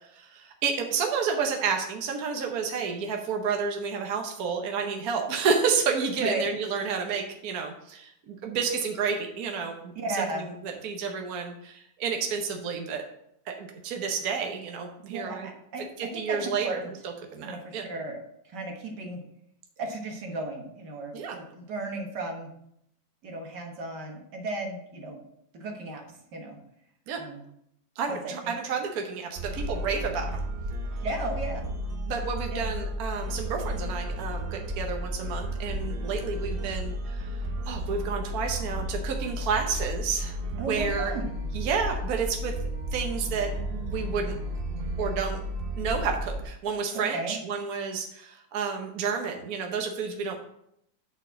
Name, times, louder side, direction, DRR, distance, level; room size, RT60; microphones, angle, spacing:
voice 1, 0.2-9.9 10.3-13.0 13.5-15.5 16.0-16.8 17.3-17.8 21.1-21.4 27.1-27.2 28.0-30.4 32.1-37.4 37.7-41.1 41.5-42.5 42.9-44.4 45.0-45.4 45.8-50.4, right 5 dB, 65° right, 3 dB, 1.3 m, -30 dB
voice 2, 10.0-10.5 15.1-16.9 17.4-18.2 18.5-19.2 19.8-22.5 23.2-25.2 25.5-26.0 26.3-26.6 27.2-27.4 28.1-28.6 31.0-31.7 32.5-32.7 40.6-41.3 46.9-47.4, right 2 dB, 85° right, 2 dB, 2.0 m, -35 dB
sound 1, 29.4-46.4, equal, 50° right, 0.7 m, -33 dB
7.9 x 4.3 x 6.1 m, 0.76 s
omnidirectional pair, 1.8 m